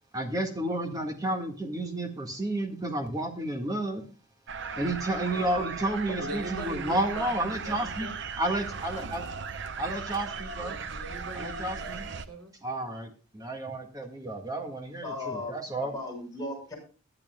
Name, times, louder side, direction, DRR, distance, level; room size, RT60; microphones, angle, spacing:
voice 1, 0.1-4.1 4.8-8.1 8.4-9.3 9.8-10.8 11.3-12.1 12.6-15.9, right 1 dB, 15° right, 4 dB, 1.8 m, -31 dB
sound 1, 4.5-12.3, right 5 dB, 50° right, 0.8 m, -37 dB
voice 2, 6.2-8.2 10.6-12.5, right 2 dB, 90° right, 2 dB, 3.6 m, -41 dB
voice 3, 15.0-15.5 15.8-16.8, left 2 dB, 15° left, -3 dB, 6.8 m, -36 dB
22.0 x 8.9 x 2.3 m, 0.37 s
head